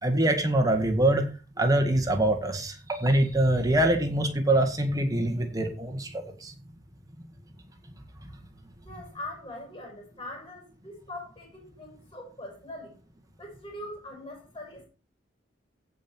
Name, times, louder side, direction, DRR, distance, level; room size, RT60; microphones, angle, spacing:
voice 1, 0.0-1.2 1.6-6.5, right 1 dB, 20° right, 4 dB, 1.9 m, -24 dB
voice 2, 8.8-13.0 13.4-14.8, left 1 dB, 25° left, 1 dB, 5.4 m, -42 dB
15.5 x 5.6 x 4.6 m, 0.34 s
head